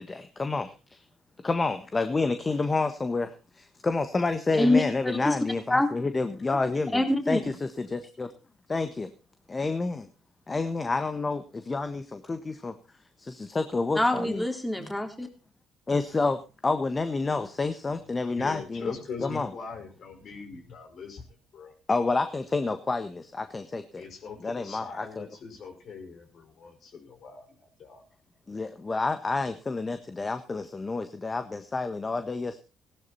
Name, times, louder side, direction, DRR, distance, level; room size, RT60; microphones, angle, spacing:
voice 1, 1.4-3.3 3.8-7.4 7.9-8.3 8.7-9.1 9.5-9.9 10.5-11.4 11.7-12.0 12.3-12.4 12.6-12.7 13.5-14.4 15.9-16.4 16.6-18.9 19.2-19.5 21.9-23.1 23.5-23.8 24.4-25.2 28.5-32.6, left 3 dB, 30° left, 9 dB, 1.5 m, -28 dB
voice 2, 4.6-5.4 5.7-5.9 6.9-7.4 14.0-15.3, left 1 dB, 10° left, 4 dB, 3.5 m, -25 dB
voice 3, 18.3-21.3 21.5-21.7 24.0-28.0, left 5 dB, 60° left, 4 dB, 5.2 m, -41 dB
16.5 x 12.0 x 4.2 m, 0.32 s
supercardioid pair, 60°, 0 cm